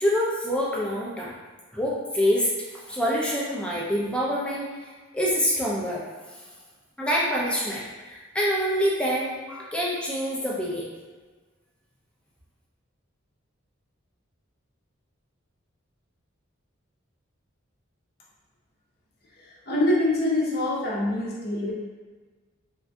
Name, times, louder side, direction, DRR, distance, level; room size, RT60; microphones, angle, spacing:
voice 1, 0.0-1.3 1.7-2.5 2.7-6.0 7.0-10.9, equal, 5° left, -5 dB, 0.4 m, -26 dB
voice 2, 19.7-21.7, left 1 dB, 50° left, -5 dB, 0.7 m, -24 dB
3.6 x 2.5 x 2.2 m, 1.4 s
head